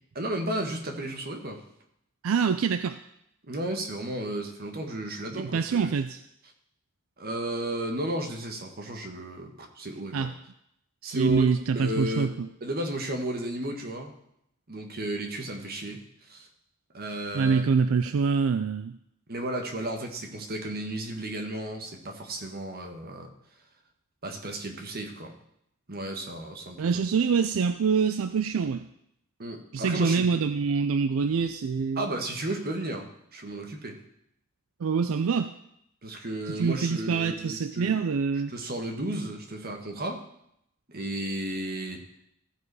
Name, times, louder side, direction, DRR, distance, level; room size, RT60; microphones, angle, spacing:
voice 1, 0.1-1.6 3.5-6.0 7.2-10.3 11.0-12.3 12.6-14.1 14.7-16.5 16.9-17.6 19.3-23.3 24.2-25.3 25.9-27.0 29.4-30.3 32.0-34.0 36.0-38.0 38.5-40.2 40.9-42.0, right 1 dB, 50° right, 3 dB, 1.4 m, -33 dB
voice 2, 2.2-3.0 5.4-6.2 10.1-10.3 11.0-12.5 17.3-19.0 26.8-28.9 29.7-32.1 34.8-35.5 36.5-38.5, right 5 dB, 80° right, 10 dB, 0.4 m, -25 dB
15.0 x 5.0 x 4.8 m, 0.76 s
head